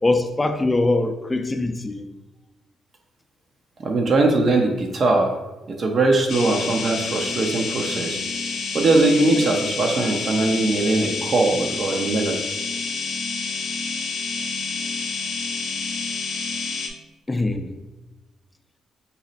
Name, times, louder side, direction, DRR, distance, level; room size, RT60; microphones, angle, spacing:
voice 1, 0.0-2.1 17.3-17.8, left 2 dB, 20° left, 7 dB, 0.4 m, -22 dB
voice 2, 3.8-5.3 5.7-8.2 8.7-12.4, right 2 dB, 45° right, 2 dB, 0.6 m, -20 dB
sound 1, 6.3-16.9, left 4 dB, 75° left, 0.6 m, -28 dB
4.0 x 2.0 x 4.0 m, 1.1 s
cardioid pair, 90°, 0 cm